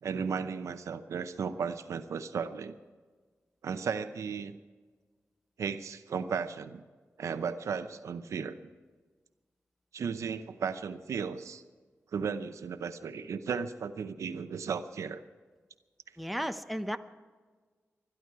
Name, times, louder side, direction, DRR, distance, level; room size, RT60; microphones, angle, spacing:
voice 1, 0.0-2.8 3.6-4.6 5.6-6.8 7.2-8.6 9.9-11.6 12.1-15.2, right 6 dB, 90° right, 11 dB, 0.7 m, -35 dB
voice 2, 16.2-17.0, equal, ahead, 8 dB, 0.9 m, -34 dB
23.5 x 11.0 x 4.7 m, 1.4 s
cardioid pair, 65°, 5 cm